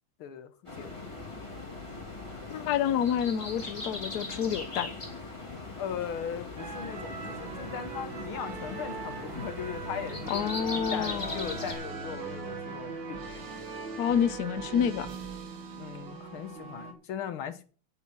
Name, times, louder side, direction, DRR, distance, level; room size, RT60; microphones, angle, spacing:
voice 1, 0.2-0.5 0.8-0.9 5.8-10.6 10.9-13.6 15.8-17.6, left 8 dB, 80° left, 2.0 m, -38 dB
sound 1, 0.7-11.7, left 3 dB, 15° left, 2.6 m, -40 dB
voice 2, 2.5-4.9 10.3-11.5 14.0-15.1, left 8 dB, 65° left, 1.1 m, -28 dB
sound 2, 6.6-16.9, right 5 dB, 65° right, 2.3 m, -40 dB
8.5 x 8.3 x 5.9 m
omnidirectional pair, 2.3 m